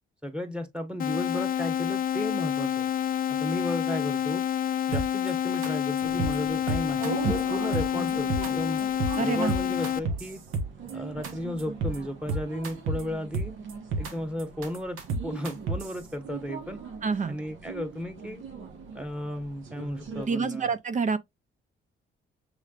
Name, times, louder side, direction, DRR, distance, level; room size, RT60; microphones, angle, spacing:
voice 1, 0.2-2.9 3.3-4.4 4.9-8.8 9.2-10.4 10.9-13.5 14.0-16.8 17.2-18.4 18.9-20.7, left 1 dB, 5° right, 1.2 m, -34 dB
sound 1, 1.0-10.0, left 10 dB, 45° left, 0.4 m, -28 dB
sound 2, 4.9-5.3 5.6-5.7 6.0-6.4 6.7-7.4 7.7-8.5 8.8-9.2 9.5-10.9 11.2-11.3 11.6-12.0 12.3-13.0 13.3-14.1 14.4-15.9, right 3 dB, 90° right, 1.3 m, -30 dB
sound 3, 6.0-20.3, right 6 dB, 70° right, 1.2 m, -42 dB
voice 2, 9.2-9.5 17.0-17.3 20.2-21.2, right 5 dB, 40° right, 0.6 m, -27 dB
6.4 x 3.1 x 2.4 m
cardioid pair, 90°, 20 cm